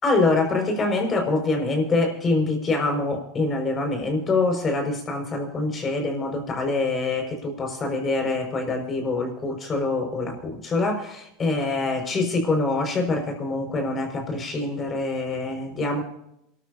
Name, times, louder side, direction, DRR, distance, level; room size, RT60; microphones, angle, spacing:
voice 1, 0.0-16.0, left 3 dB, 30° left, 4 dB, 5.7 m, -25 dB
28.0 x 13.5 x 2.8 m, 0.79 s
hypercardioid pair, 100°, 0 cm